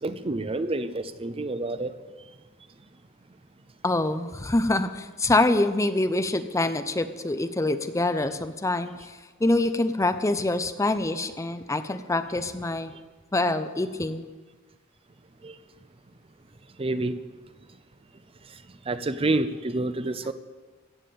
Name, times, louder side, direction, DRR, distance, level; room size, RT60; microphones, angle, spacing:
voice 1, 0.0-1.9 15.4-15.6 16.8-17.1 18.9-20.3, right 2 dB, 30° right, 12 dB, 0.6 m, -28 dB
voice 2, 3.8-12.9 13.3-14.3, left 2 dB, 15° left, 10 dB, 0.5 m, -25 dB
15.0 x 7.2 x 8.4 m, 1.3 s
head